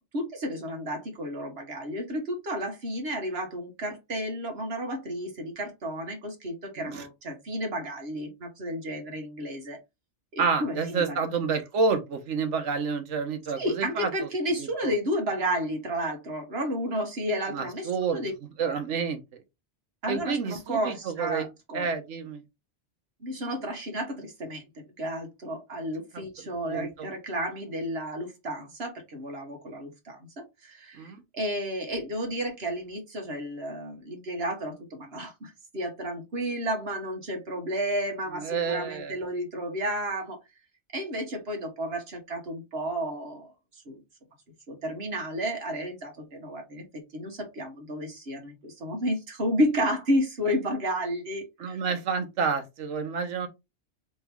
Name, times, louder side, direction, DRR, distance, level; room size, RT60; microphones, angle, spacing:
voice 1, 0.1-9.8 10.3-11.2 13.6-18.3 18.6-18.7 20.0-21.9 23.2-40.4 40.9-44.0 44.7-51.8, equal, 60° right, 1.5 m, -32 dB
voice 2, 10.4-14.1 14.6-14.9 17.5-18.3 18.6-19.2 20.1-21.5 21.7-22.4 26.1-26.2 26.7-27.1 30.9-31.2 38.3-39.2 51.6-53.5, right 5 dB, 85° right, 1.2 m, -29 dB
3.4 x 3.0 x 3.4 m
omnidirectional pair, 1.2 m